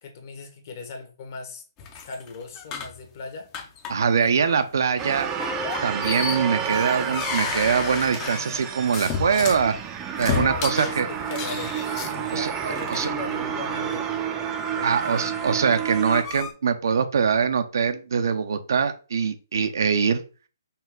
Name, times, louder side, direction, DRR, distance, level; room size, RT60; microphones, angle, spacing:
voice 1, 0.0-1.6 2.0-3.5 4.2-4.3 10.2-11.0 11.3-14.1 14.8-15.3, left 3 dB, 45° left, 4 dB, 1.3 m, -38 dB
sound 1, 1.8-3.0 3.5-4.1 4.4-4.7 5.4-9.6 10.2-13.1 13.8-14.0 15.6-16.5, left 6 dB, 25° left, 0.6 m, -32 dB
voice 2, 3.9-5.3 5.8-9.7 10.2-11.1 12.3-13.1 14.8-20.2, right 6 dB, 65° right, 9 dB, 0.6 m, -23 dB
sound 2, 5.0-16.2, right 7 dB, 15° right, 0.5 m, -30 dB
5.5 x 2.4 x 3.7 m, 0.35 s
hypercardioid pair, 145°, 2 cm